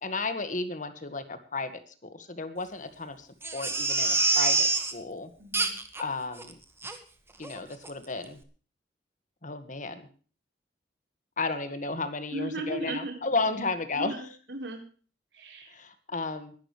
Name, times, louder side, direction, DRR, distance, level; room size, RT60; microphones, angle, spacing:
voice 1, 0.0-5.3 6.0-6.6 7.4-8.4 9.4-10.0 11.4-14.3 15.7-16.5, left 3 dB, 45° left, 9 dB, 1.9 m, -33 dB
Crying sobbing, 3.4-4.9 5.5-6.0 6.4-6.5 6.8-7.0 7.4-7.6 7.8-7.9, right 3 dB, 15° right, 1.8 m, -26 dB
voice 2, 5.4-5.8 12.3-13.2 13.9-14.8 15.3-15.7, right 1 dB, 75° right, 2 dB, 4.5 m, -36 dB
21.5 x 11.5 x 3.4 m, 0.40 s
head